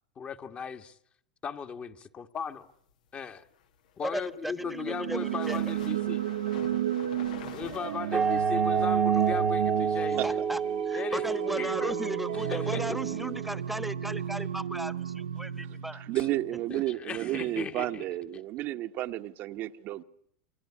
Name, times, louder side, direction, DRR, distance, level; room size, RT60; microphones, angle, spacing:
voice 1, 0.1-1.0 1.4-2.7 3.1-3.5 4.0-6.2 7.5-10.4 10.9-11.2 11.6-11.9 12.5-13.2 16.1-16.2 16.7-18.0, left 6 dB, 30° left, 1.5 m, -37 dB
sound 1, 3.9-9.0, left 9 dB, 80° left, 1.6 m, -47 dB
voice 2, 4.0-5.6 10.1-10.6 10.9-16.0, right 1 dB, 5° right, 1.3 m, -36 dB
sound 2, 4.6-16.5, right 11 dB, 90° right, 1.1 m, -32 dB
sound 3, 8.1-13.5, right 5 dB, 20° right, 1.1 m, -29 dB
voice 3, 15.9-20.0, right 15 dB, 50° right, 1.1 m, -32 dB
29.0 x 23.5 x 8.6 m
supercardioid pair, 110°, 4 cm